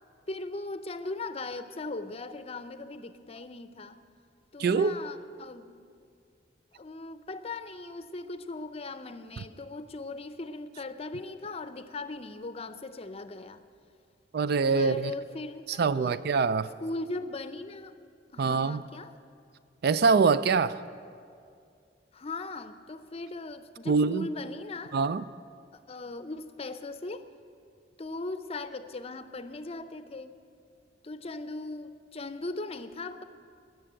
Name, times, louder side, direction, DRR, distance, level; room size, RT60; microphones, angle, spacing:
voice 1, 0.3-4.0 4.5-5.7 6.7-13.6 14.7-16.3 16.8-17.9 18.3-19.1 22.1-24.9 25.7-27.2 28.0-30.4 31.0-33.2, left 2 dB, 35° left, 11 dB, 0.6 m, -39 dB
voice 2, 4.6-5.0 14.3-15.1 15.8-16.7 18.4-18.8 19.8-20.8 23.9-24.3 24.9-25.2, right 5 dB, 60° right, 15 dB, 0.4 m, -24 dB
18.5 x 6.9 x 8.8 m, 2.4 s
head